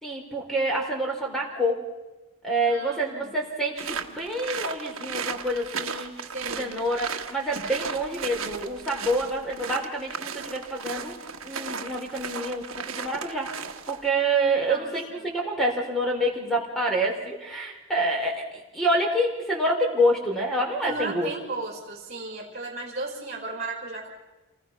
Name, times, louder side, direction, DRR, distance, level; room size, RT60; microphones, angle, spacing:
voice 1, 0.0-1.8 2.4-6.1 6.4-11.2 11.4-13.5 13.9-21.3, right 1 dB, ahead, 0 dB, 4.1 m, -27 dB
voice 2, 2.7-3.4 6.3-6.7 14.7-15.3 20.8-24.1, right 3 dB, 35° right, -2 dB, 4.6 m, -35 dB
sound 1, 3.8-14.1, right 5 dB, 65° right, 1.4 m, -35 dB
28.5 x 20.0 x 5.9 m, 1.1 s
head